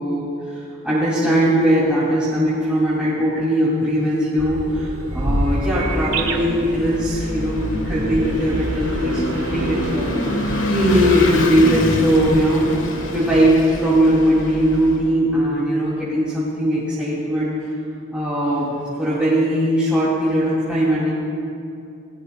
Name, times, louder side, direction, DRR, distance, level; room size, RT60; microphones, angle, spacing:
voice 1, 0.0-10.1 10.4-17.5 18.1-21.1, equal, 5° right, -10 dB, 2.9 m, -19 dB
sound 1, 4.4-13.4, right 1 dB, 80° right, 1.4 m, -28 dB
Vehicle / Engine, 5.3-15.1, left 1 dB, 60° left, 1.6 m, -27 dB
28.0 x 19.5 x 2.3 m, 2.6 s
head